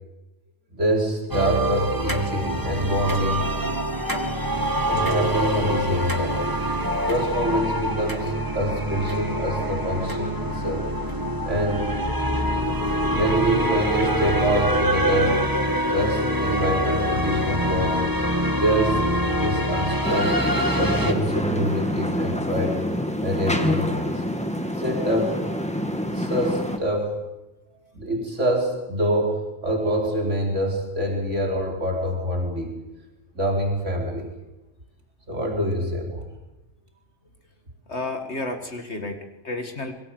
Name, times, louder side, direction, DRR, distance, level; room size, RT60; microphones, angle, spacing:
voice 1, 0.7-3.4 4.7-6.5 7.0-10.9 11.4-11.8 13.1-15.4 15.8-18.0 18.5-19.0 19.3-20.4 20.8-22.8 23.2-24.2 24.8-25.4 26.1-27.2 27.9-32.7 33.3-34.3 35.3-36.3, equal, 70° right, 1 dB, 4.8 m, -25 dB
sound 1, 1.3-21.1, equal, 15° right, 2.1 m, -25 dB
sound 2, 20.0-26.8, equal, 5° left, 2.3 m, -26 dB
voice 2, 37.9-39.9, left 2 dB, 60° left, 5 dB, 2.2 m, -31 dB
25.0 x 22.5 x 7.8 m, 0.96 s
omnidirectional pair, 1.3 m